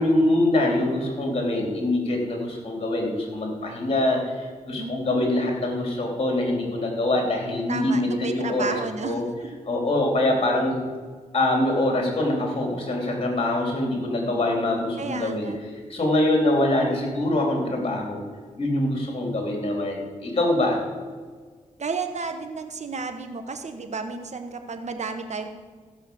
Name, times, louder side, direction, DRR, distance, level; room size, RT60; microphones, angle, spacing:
voice 1, 0.0-9.2 9.7-10.8 11.3-15.5 15.9-18.2 18.6-20.8, left 1 dB, 45° left, 0 dB, 3.5 m, -24 dB
voice 2, 4.8-5.6 7.7-9.6 15.0-15.6 21.8-25.5, right 4 dB, 60° right, 7 dB, 1.3 m, -32 dB
15.0 x 6.0 x 7.1 m, 1.5 s
cardioid pair, 65°, 13 cm